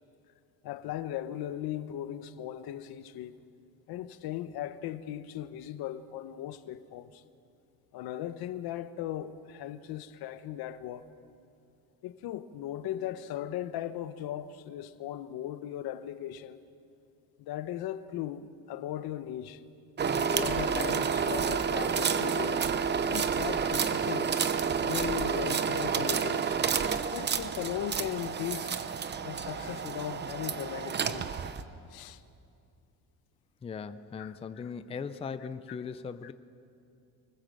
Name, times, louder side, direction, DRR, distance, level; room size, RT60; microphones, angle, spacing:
voice 1, 0.6-3.4 3.9-7.2 7.9-11.0 12.0-16.6 17.4-19.6 20.3-22.7 23.1-24.4 24.8-26.6 27.1-28.8 29.2-31.3 31.9-32.2 34.2-34.4 35.7-35.8 36.2-36.3, left 12 dB, 70° left, 1.1 m, -38 dB
sound 1, 20.0-31.6, right 6 dB, 30° right, 0.8 m, -30 dB
voice 2, 33.6-36.3, left 6 dB, 15° left, 0.5 m, -39 dB
24.5 x 20.0 x 7.7 m
cardioid pair, 150°, 38 cm